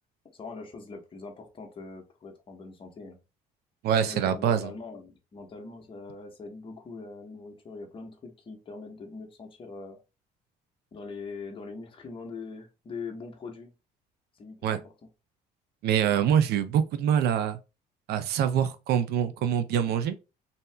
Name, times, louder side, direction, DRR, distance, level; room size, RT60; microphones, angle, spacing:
voice 1, 0.2-3.2 4.0-10.0 10.9-13.7 14.3-14.9, left 4 dB, 30° left, 0.9 m, -42 dB
voice 2, 3.8-4.7 14.6-14.8 15.8-17.6 18.1-20.2, right 9 dB, 70° right, 0.5 m, -25 dB
2.7 x 2.3 x 3.2 m
cardioid pair, 110°, 17 cm